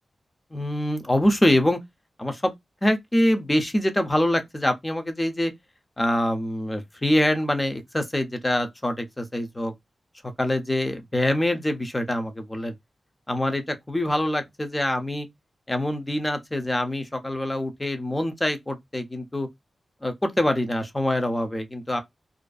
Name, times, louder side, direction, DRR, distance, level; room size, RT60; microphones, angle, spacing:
voice 1, 0.5-1.8 2.2-2.5 2.8-5.5 6.0-9.7 10.4-12.7 13.3-15.3 15.7-19.5 20.0-22.0, left 1 dB, 15° left, 0.5 m, -25 dB
2.5 x 2.3 x 2.3 m
wide cardioid pair, 165°, 0 cm